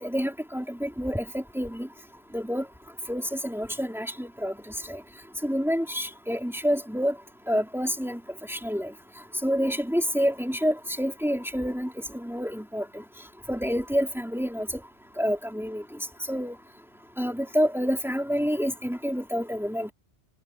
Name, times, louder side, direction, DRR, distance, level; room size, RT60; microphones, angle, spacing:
voice 1, 0.0-1.9 2.3-2.6 3.1-4.5 4.9-5.0 5.4-7.1 7.5-8.2 8.5-8.9 9.4-13.0 13.5-14.8 15.2-15.8 16.3-16.6 17.2-19.9, equal, ahead, 3.8 m, -28 dB
omnidirectional pair, 1.2 m